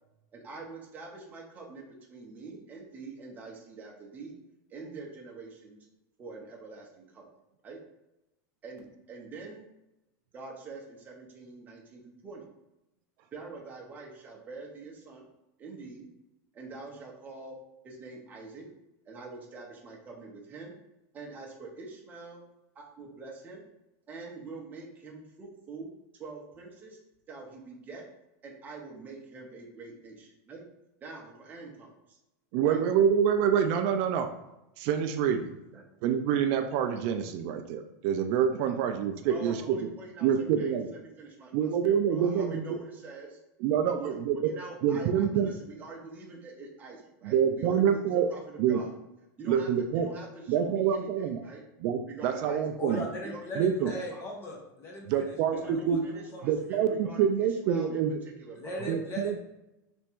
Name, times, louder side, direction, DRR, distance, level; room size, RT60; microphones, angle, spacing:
voice 1, 0.3-1.8 2.1-4.4 4.7-5.8 6.2-7.2 7.6-7.8 8.6-9.6 10.3-12.4 13.3-15.3 15.6-16.1 16.5-17.6 17.8-18.7 19.1-20.8 21.1-22.4 22.7-23.7 24.1-25.9 26.2-27.0 27.3-28.0 28.4-30.6 31.0-32.2 32.6-32.8 35.7-35.8 38.6-38.7 39.3-43.4 43.8-49.0 49.4-49.7 49.9-51.6 52.1-54.2 55.5-58.9, right 3 dB, 15° right, -1 dB, 0.7 m, -45 dB
voice 2, 32.5-34.3 34.8-35.5 36.0-39.9 40.2-40.9 41.5-42.8 43.6-44.5 44.8-45.5 47.2-48.3 48.6-48.8 49.5-50.1 50.5-51.4 51.8-53.0 53.6-53.9 55.0-56.1 56.4-58.1 58.9-59.4, right 8 dB, 40° right, 7 dB, 0.3 m, -26 dB
voice 3, 52.8-56.9 58.6-59.4, equal, 25° left, 0 dB, 0.9 m, -39 dB
3.5 x 3.0 x 4.5 m, 0.92 s
supercardioid pair, 165°, 10 cm